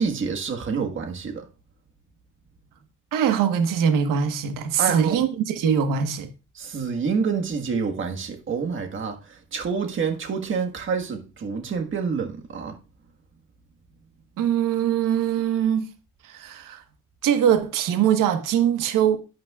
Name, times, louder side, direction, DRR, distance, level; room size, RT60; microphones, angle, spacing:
voice 1, 0.0-1.4 4.8-5.2 6.6-9.2 9.5-12.8, right 5 dB, 40° right, 1.6 m, -27 dB
voice 2, 3.1-6.3 14.4-15.9 16.2-16.8 17.2-19.2, right 8 dB, 85° right, 1.4 m, -22 dB
11.0 x 11.0 x 2.4 m
cardioid pair, 155°, 31 cm